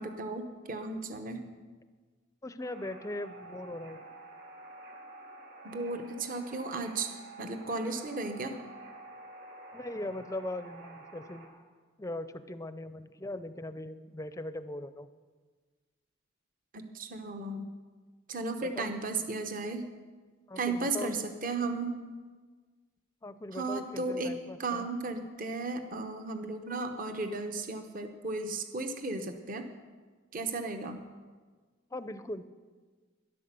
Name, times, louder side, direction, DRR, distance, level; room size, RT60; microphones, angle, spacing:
voice 1, 0.0-1.4 5.6-8.6 16.7-17.7 18.3-19.9 20.6-22.0 23.5-24.3 24.6-29.7 30.3-31.0, right 3 dB, 45° right, 6 dB, 0.9 m, -35 dB
voice 2, 2.4-4.0 9.7-11.5 12.0-15.1 18.6-18.9 20.5-21.2 23.2-24.9 31.9-32.5, left 1 dB, 15° left, 12 dB, 0.5 m, -40 dB
sound 1, 2.6-11.5, right 2 dB, 60° right, 3.8 m, -49 dB
12.5 x 11.0 x 6.8 m, 1.4 s
head